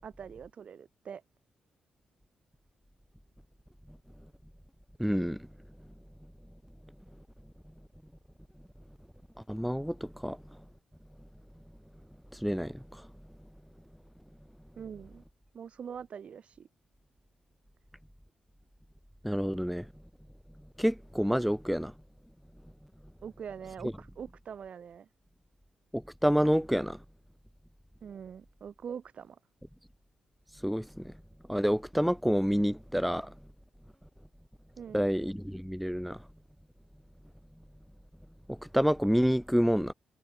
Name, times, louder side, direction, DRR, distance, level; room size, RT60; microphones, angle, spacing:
voice 1, 0.0-1.2 14.8-15.2 15.5-16.7 23.2-25.1 28.0-29.4 34.8-35.1, right 7 dB, 60° right, 7.0 m, -43 dB
voice 2, 5.0-5.5 9.5-10.4 12.3-13.0 19.2-19.9 20.8-21.9 25.9-27.0 30.6-31.1 31.5-33.3 34.9-36.2 38.5-39.9, equal, ahead, 3.8 m, -28 dB
cardioid pair, 75°, 2 cm